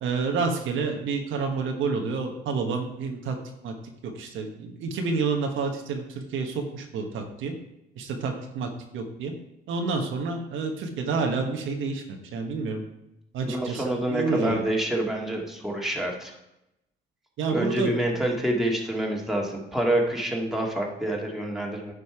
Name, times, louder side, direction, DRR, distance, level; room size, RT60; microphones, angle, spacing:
voice 1, 0.0-3.4 3.6-3.7 4.0-7.5 8.0-9.3 9.7-12.8 13.3-14.6 17.4-18.2, right 4 dB, 85° right, 3 dB, 1.2 m, -29 dB
voice 2, 13.4-16.3 17.5-21.9, right 1 dB, ahead, -1 dB, 2.0 m, -27 dB
10.0 x 5.4 x 4.9 m, 0.88 s
cardioid pair, 90°, 20 cm